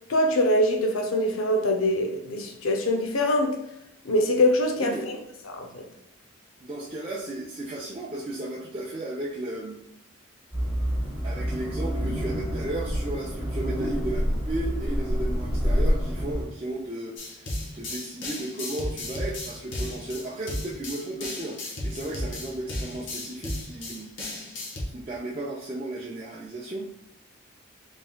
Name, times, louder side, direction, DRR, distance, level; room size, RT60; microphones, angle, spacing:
voice 1, 0.1-3.6 4.0-5.1 5.5-5.8, left 1 dB, 85° left, 0.6 m, -23 dB
voice 2, 6.6-9.8 11.2-17.5 17.7-24.1 24.8-26.9, right 1 dB, 25° right, 0.5 m, -34 dB
sound 1, 10.5-16.4, equal, 25° left, 1.3 m, -27 dB
sound 2, 17.2-24.8, left 1 dB, 60° left, 1.0 m, -34 dB
4.1 x 3.5 x 2.2 m
head